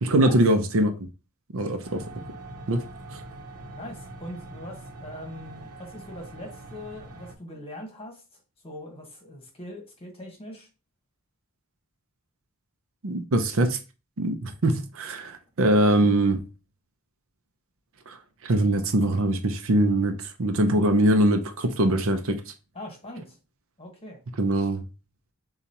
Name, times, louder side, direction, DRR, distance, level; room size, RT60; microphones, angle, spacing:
voice 1, 0.0-0.9 1.5-2.0 2.7-2.8 13.0-13.8 14.2-16.4 18.1-18.2 18.4-22.5 24.4-24.8, right 1 dB, 65° right, 0.7 m, -22 dB
sound 1, 1.8-7.3, right 2 dB, 85° right, 1.0 m, -43 dB
voice 2, 3.8-8.2 8.6-10.7 22.7-23.4 23.8-24.2, left 1 dB, 25° left, 1.4 m, -41 dB
6.9 x 2.4 x 2.9 m
head